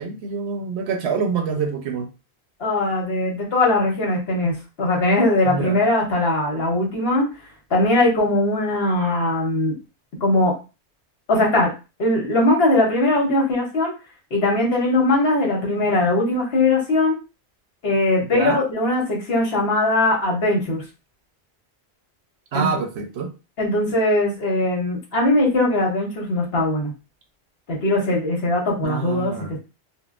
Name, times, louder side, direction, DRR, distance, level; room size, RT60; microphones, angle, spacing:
voice 1, 0.0-2.1 5.4-5.8 18.2-18.6 22.5-23.3 28.8-29.5, right 5 dB, 75° right, 4 dB, 0.9 m, -26 dB
voice 2, 2.6-7.3 7.7-9.7 10.2-10.5 11.3-11.7 12.0-13.9 14.3-17.2 17.8-20.8 22.5-22.7 23.6-26.9 27.7-29.6, left 2 dB, 65° left, -1 dB, 1.2 m, -20 dB
3.7 x 2.1 x 2.4 m, 0.30 s
omnidirectional pair, 1.1 m